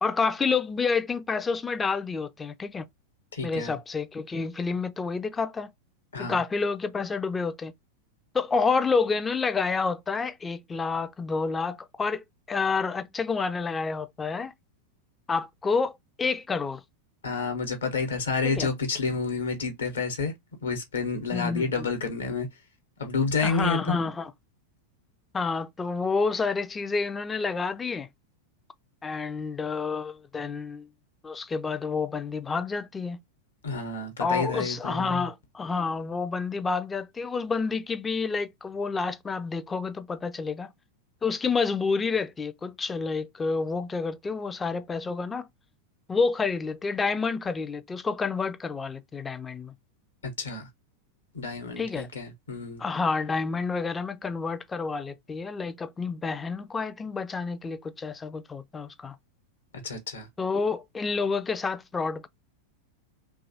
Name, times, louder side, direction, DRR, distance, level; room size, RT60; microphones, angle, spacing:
voice 1, 0.0-2.9 3.4-5.7 6.2-7.7 8.3-14.5 15.3-16.8 18.4-18.7 21.3-21.9 23.4-24.3 25.3-28.1 29.0-30.9 31.2-33.2 34.2-40.7 41.2-45.5 46.1-49.7 51.8-52.1 52.8-59.2 60.4-62.3, left 4 dB, 15° left, 0.3 m, -29 dB
voice 2, 3.3-3.8 6.1-6.4 17.2-20.3 20.6-22.5 23.0-24.0 33.6-35.3 50.2-50.7 51.3-52.8 59.8-60.3, left 4 dB, 70° left, 0.9 m, -30 dB
2.8 x 2.3 x 2.7 m
figure-of-eight pair, 90°, 0 cm